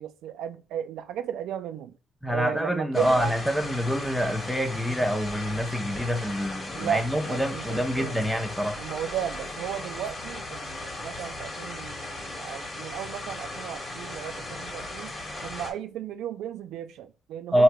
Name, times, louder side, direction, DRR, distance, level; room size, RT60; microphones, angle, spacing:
voice 1, 0.0-1.9 2.3-3.4 6.7-8.3 8.8-15.1 15.4-17.6, right 10 dB, 85° right, 0.4 m, -35 dB
voice 2, 2.2-8.8 17.5-17.6, equal, ahead, 0.8 m, -26 dB
sound 1, 2.9-15.7, left 2 dB, 35° left, 1.8 m, -37 dB
4.6 x 2.9 x 2.2 m
cardioid pair, 90°, 0 cm